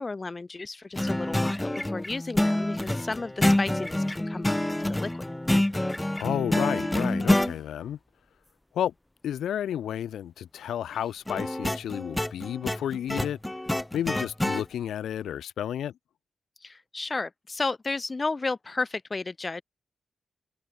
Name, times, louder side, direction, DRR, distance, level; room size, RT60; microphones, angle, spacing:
voice 1, 0.0-5.2 16.6-19.6, left 3 dB, 35° left, 4.6 m, -33 dB
sound 1, 1.0-7.5 11.3-14.6, left 1 dB, 15° left, 4.3 m, -27 dB
voice 2, 6.2-8.0 8.7-8.9 9.2-13.4 13.9-15.9, left 10 dB, 85° left, 7.2 m, -31 dB
supercardioid pair, 50°, 0 cm